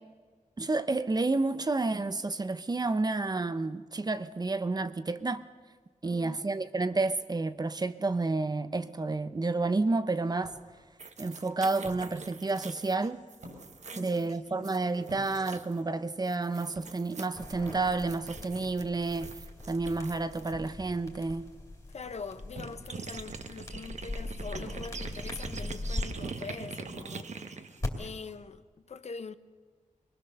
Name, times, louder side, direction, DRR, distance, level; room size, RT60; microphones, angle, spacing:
voice 1, 0.6-5.5 6.0-10.5 11.2-13.2 14.0-19.3 19.7-21.5, right 3 dB, 30° right, 0.7 m, -30 dB
voice 2, 6.0-6.4 13.9-14.7 21.9-27.7 28.0-29.3, left 5 dB, 55° left, 0.8 m, -44 dB
sound 1, 10.2-28.3, right 1 dB, 85° right, 6.7 m, -54 dB
sound 2, 11.0-15.8 16.2-20.5 22.0-22.1 22.3-28.3, right 4 dB, 60° right, 1.1 m, -44 dB
sound 3, 17.4-26.0 27.8-27.9, left 2 dB, 25° left, 2.6 m, -40 dB
23.0 x 20.0 x 6.8 m
wide cardioid pair, 115°, 13 cm